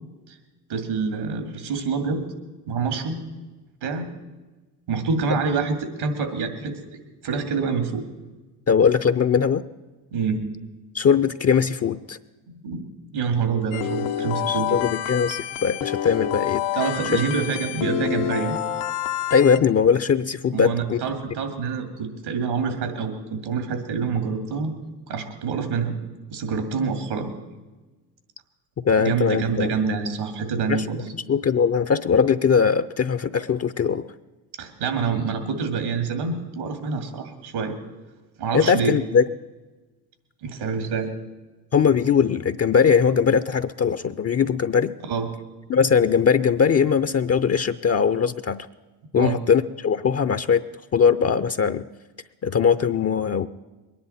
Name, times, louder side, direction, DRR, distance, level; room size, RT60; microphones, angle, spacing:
voice 1, 0.7-2.3 2.7-3.3 3.8-4.1 4.9-6.8 7.2-8.0 10.1-10.5 12.5-14.8 16.8-18.6 20.5-24.7 25.1-25.9 26.3-27.3 29.0-31.0 34.6-37.8 38.4-38.9 40.4-41.1 45.0-45.3 49.1-49.4, right 5 dB, 75° right, 6 dB, 2.5 m, -26 dB
voice 2, 8.7-9.6 10.9-12.2 14.5-16.6 19.3-21.0 28.8-29.7 30.7-30.8 31.1-34.0 38.5-39.2 41.7-44.9 45.7-48.7 49.1-50.6 50.9-51.9 52.4-53.5, left 6 dB, 30° left, 13 dB, 0.6 m, -20 dB
sound 1, 13.7-19.6, left 11 dB, 80° left, 0.9 m, -28 dB
22.5 x 10.5 x 4.3 m, 1.2 s
hypercardioid pair, 55°, 48 cm